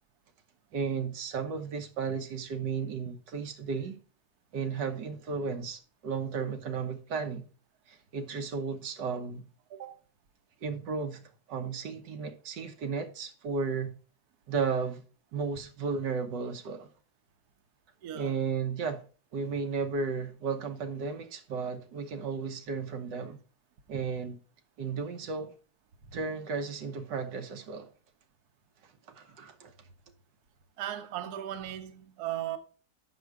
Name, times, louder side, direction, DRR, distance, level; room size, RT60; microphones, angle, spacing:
voice 1, 0.7-4.0 4.5-7.5 7.9-9.5 10.6-11.2 11.5-14.0 14.5-15.0 15.3-16.9 18.1-19.0 19.3-23.4 23.9-24.4 24.8-25.5 26.1-27.9 29.1-29.7, right 5 dB, 85° right, 1.7 m, -34 dB
voice 2, 9.7-10.0 18.0-18.3 30.8-32.6, right 12 dB, 65° right, 1.2 m, -37 dB
7.8 x 6.1 x 4.6 m
omnidirectional pair, 1.8 m